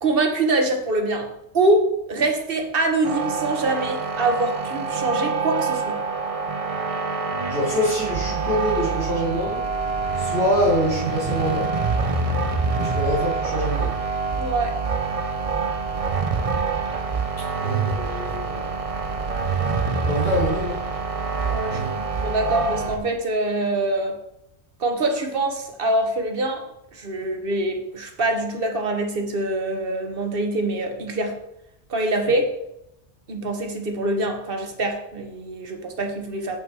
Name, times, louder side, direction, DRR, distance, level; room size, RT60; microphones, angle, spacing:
voice 1, 0.0-6.0 14.4-14.7 21.5-24.2 24.8-26.6 26.9-31.4 31.9-32.5 33.3-36.6, right 2 dB, 55° right, 4 dB, 1.4 m, -24 dB
sound 1, 3.0-23.0, right 4 dB, 35° right, 0.7 m, -26 dB
voice 2, 7.5-9.6 10.2-11.7 12.8-13.9 17.6-18.7 20.1-20.8 21.7-21.9, equal, 65° left, -9 dB, 3.9 m, -25 dB
7.6 x 5.9 x 4.7 m, 0.83 s
omnidirectional pair, 1.1 m